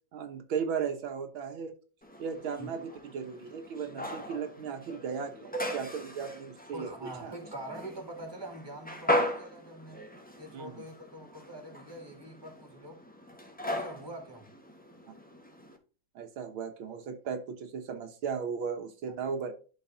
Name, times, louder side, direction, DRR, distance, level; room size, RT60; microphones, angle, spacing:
voice 1, 0.1-1.7 2.2-7.4 10.5-10.8 16.2-19.5, right 6 dB, 85° right, 1.9 m, -36 dB
sound 1, 2.0-15.8, left 1 dB, 5° left, 0.9 m, -38 dB
voice 2, 6.7-10.1 10.4-13.0 13.6-14.5, right 1 dB, 10° right, 2.1 m, -44 dB
11.5 x 4.6 x 2.7 m
omnidirectional pair, 2.2 m